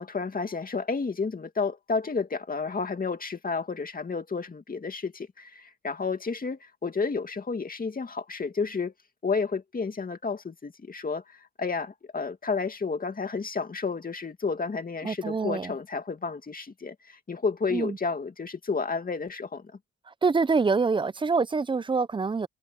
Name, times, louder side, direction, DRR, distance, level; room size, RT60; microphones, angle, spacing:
voice 1, 0.0-8.9 9.2-19.7, left 4 dB, 30° left, 2.4 m, -31 dB
voice 2, 15.0-15.7 17.7-18.0 20.2-22.5, right 4 dB, 15° right, 0.5 m, -25 dB
cardioid pair, 90°, 30 cm